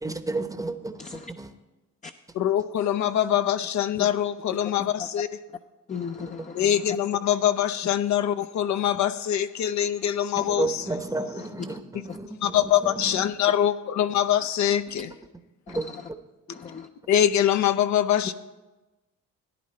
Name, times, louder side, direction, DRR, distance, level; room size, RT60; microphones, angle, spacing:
voice 1, 0.0-1.0 1.4-1.5 10.4-13.3 14.9-15.0 15.7-15.9, right 2 dB, 10° right, 0.8 m, -32 dB
voice 2, 1.0-1.3 2.0-2.1 4.0-4.1 4.6-5.1 5.9-7.0 7.8-7.9 10.4-10.5 11.3-11.8 12.1-12.2 15.7-16.1 16.5-16.9, left 6 dB, 25° left, 0.5 m, -37 dB
voice 3, 2.4-5.3 6.5-10.8 12.4-15.1 17.1-18.3, left 10 dB, 70° left, 0.6 m, -24 dB
13.5 x 10.5 x 4.3 m
cardioid pair, 90°, 30 cm